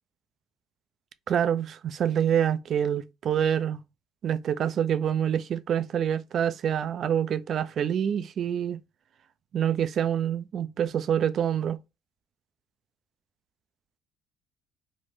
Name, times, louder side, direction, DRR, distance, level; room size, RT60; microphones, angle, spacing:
voice 1, 1.3-3.8 4.2-8.8 9.5-11.8, right 9 dB, 55° right, 0.3 m, -26 dB
3.1 x 2.1 x 3.1 m
supercardioid pair, 70°, 0 cm